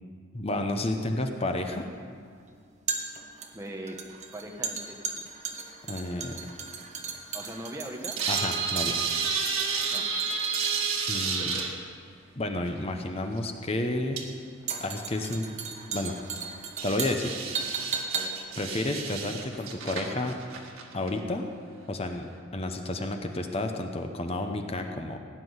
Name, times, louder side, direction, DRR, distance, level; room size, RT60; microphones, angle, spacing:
voice 1, 0.3-1.9 5.9-6.4 8.3-9.0 11.1-11.6 12.4-14.2 14.8-15.5 15.9-16.2 16.8-17.6 18.6-20.4 20.9-21.5 21.9-25.2, left 1 dB, 30° left, 5 dB, 0.9 m, -31 dB
sound 1, 0.7-20.0 20.3-20.4, right 5 dB, 35° right, 1.3 m, -37 dB
voice 2, 3.5-4.0 4.3-5.3 7.3-8.2 9.9-10.1 18.1-18.4, right 1 dB, 15° right, 2 dB, 1.2 m, -40 dB
sound 2, 8.2-11.7 13.4-13.5 14.2-14.3 14.6-14.7 15.8-16.1 16.8-21.1 21.5-21.6, right 5 dB, 85° right, 1.8 m, -31 dB
17.0 x 6.1 x 9.7 m, 2.1 s
head